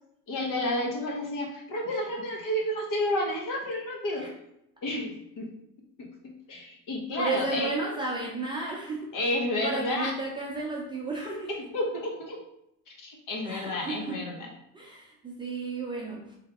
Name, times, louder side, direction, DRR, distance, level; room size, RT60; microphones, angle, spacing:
voice 1, 0.3-4.3 4.8-5.5 6.0-7.7 9.1-10.1 11.5-12.4 12.9-14.5, left 1 dB, 45° left, 0 dB, 1.2 m, -31 dB
voice 2, 7.2-9.1 9.6-11.5 13.4-14.2 14.7-16.4, right 3 dB, 10° right, -4 dB, 0.6 m, -33 dB
3.5 x 3.2 x 3.5 m, 0.78 s
supercardioid pair, 120°, 42 cm